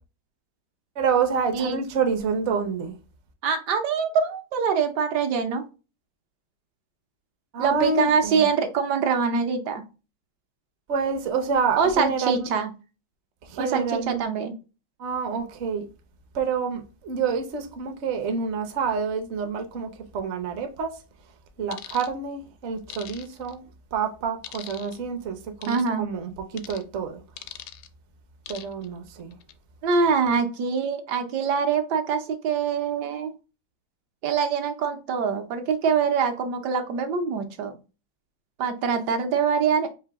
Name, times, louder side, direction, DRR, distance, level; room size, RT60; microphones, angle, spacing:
voice 1, 1.0-2.9 7.5-8.5 10.9-12.5 13.4-14.2 15.0-15.9 16.3-20.9 21.6-23.6 23.9-27.2 28.5-29.4, right 5 dB, 55° right, 0.8 m, -28 dB
voice 2, 3.4-5.6 7.6-9.8 11.8-12.7 13.6-14.6 25.7-26.1 29.8-33.3 34.2-37.8 38.6-39.9, right 6 dB, 70° right, 1.3 m, -24 dB
sound 1, 21.7-22.1 22.9-23.5 24.4-25.0 25.6-25.9 26.6-26.8 27.4-27.9 28.5-28.9 29.3-29.5, left 11 dB, 75° left, 1.1 m, -41 dB
4.9 x 2.7 x 3.4 m
omnidirectional pair, 1.9 m